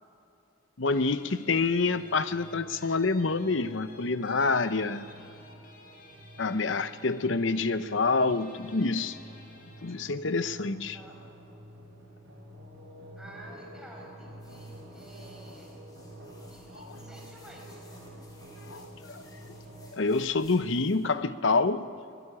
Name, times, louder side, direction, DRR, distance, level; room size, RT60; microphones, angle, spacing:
voice 1, 0.8-5.0 6.4-9.2 9.8-11.0 16.7-17.0 18.7-21.9, left 3 dB, 65° left, 12 dB, 0.8 m, -27 dB
Guitar, 0.9-10.1, left 3 dB, 45° left, 4.3 m, -55 dB
sound 1, 1.7-19.9, right 1 dB, 70° right, 7.4 m, -49 dB
voice 2, 13.2-15.7 16.5-17.9, equal, 5° right, -2 dB, 5.3 m, -50 dB
sound 2, 14.4-21.1, left 2 dB, 20° left, 4.9 m, -59 dB
24.0 x 18.0 x 9.9 m, 2.7 s
head